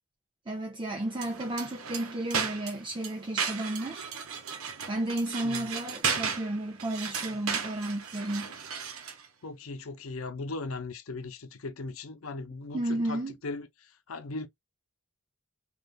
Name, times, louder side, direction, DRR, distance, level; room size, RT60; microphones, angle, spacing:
voice 1, 0.5-4.1 4.9-8.5 12.7-13.3, right 1 dB, 25° right, 0.5 m, -33 dB
sound 1, 1.1-9.3, right 6 dB, 85° right, 0.8 m, -35 dB
voice 2, 9.4-14.5, left 3 dB, 80° left, 0.6 m, -38 dB
3.5 x 2.4 x 2.5 m
head